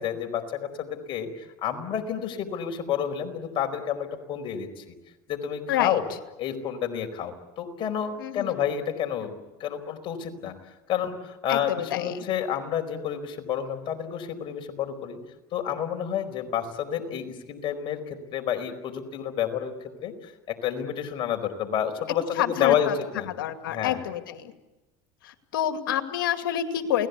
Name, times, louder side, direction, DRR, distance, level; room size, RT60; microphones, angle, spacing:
voice 1, 0.0-4.9 5.3-6.1 6.4-10.5 10.9-15.2 15.5-19.7 20.0-23.3 23.7-24.0, left 9 dB, 50° left, 5 dB, 4.7 m, -30 dB
voice 2, 5.7-6.0 8.2-8.5 11.5-12.3 22.4-22.9 23.4-24.5 25.2-27.1, left 11 dB, 90° left, 7 dB, 2.4 m, -28 dB
29.0 x 19.5 x 8.4 m, 1.1 s
supercardioid pair, 95°, 11 cm